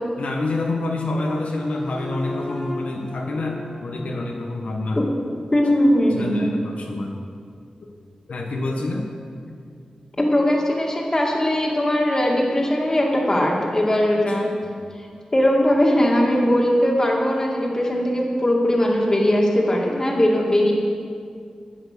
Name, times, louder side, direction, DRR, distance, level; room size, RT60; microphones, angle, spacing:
voice 1, 0.2-5.1 6.1-7.2 8.3-9.1 14.3-14.4, left 2 dB, 80° left, 0 dB, 1.3 m, -27 dB
sound 1, 1.1-5.4, left 1 dB, 5° right, 2.4 m, -37 dB
voice 2, 5.5-6.5 10.2-14.5 15.3-20.7, left 1 dB, 25° left, -1 dB, 2.2 m, -19 dB
11.5 x 9.6 x 6.8 m, 2.3 s
wide cardioid pair, 105°, 2 cm